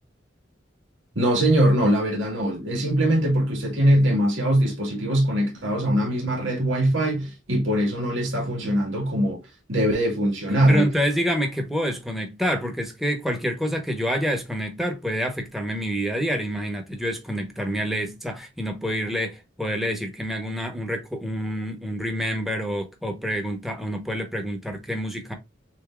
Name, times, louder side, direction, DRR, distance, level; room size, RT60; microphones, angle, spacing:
voice 1, 1.2-9.4 9.7-10.9, right 1 dB, 85° right, 2.0 m, -22 dB
voice 2, 10.7-25.3, equal, ahead, 1.0 m, -27 dB
6.9 x 2.8 x 2.4 m
head